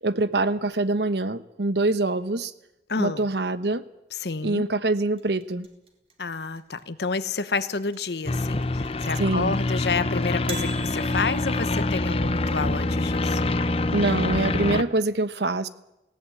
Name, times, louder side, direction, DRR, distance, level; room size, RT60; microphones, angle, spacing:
voice 1, 0.0-2.5 3.0-3.8 4.4-5.7 9.2-9.6 13.9-15.7, right 2 dB, 75° right, 14 dB, 1.0 m, -24 dB
voice 2, 2.9-3.2 4.2-4.7 6.2-13.4, left 4 dB, 70° left, 14 dB, 1.0 m, -29 dB
sound 1, 5.2-12.2, right 4 dB, 35° right, 3.0 m, -42 dB
sound 2, 8.3-14.8, left 2 dB, 35° left, 0.7 m, -25 dB
18.0 x 16.5 x 8.5 m, 0.92 s
head